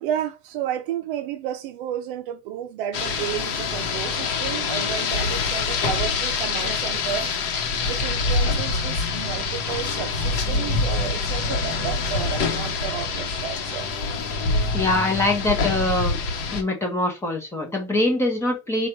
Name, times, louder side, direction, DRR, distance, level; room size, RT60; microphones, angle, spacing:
voice 1, 0.0-7.3 7.9-13.9, right 10 dB, 50° right, 0.6 m, -32 dB
Rain, 2.9-16.6, left 4 dB, 45° left, 1.0 m, -25 dB
voice 2, 14.7-16.2 16.5-18.9, left 2 dB, 10° left, 0.8 m, -23 dB
4.8 x 2.4 x 4.4 m
supercardioid pair, 170°, 33 cm